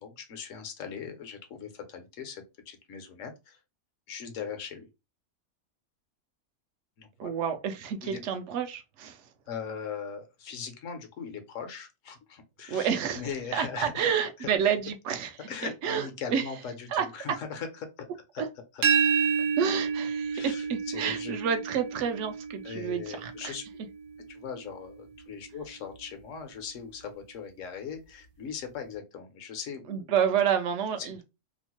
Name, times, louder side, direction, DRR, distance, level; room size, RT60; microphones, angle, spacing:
voice 1, 0.0-3.6 4.1-4.9 7.0-7.3 8.0-8.2 9.5-14.1 14.4-14.5 15.5-18.1 18.3-18.4 18.7-18.8 20.3-21.4 22.6-23.6 24.3-30.1 31.0-31.1, left 6 dB, 70° left, 1.0 m, -39 dB
voice 2, 7.2-9.2 12.7-15.3 15.6-16.4 16.9-17.4 18.4-18.5 19.6-23.5 29.9-31.2, right 7 dB, 65° right, 0.8 m, -29 dB
sound 1, 18.8-24.6, right 6 dB, 90° right, 1.1 m, -30 dB
2.9 x 2.0 x 2.9 m
omnidirectional pair, 1.5 m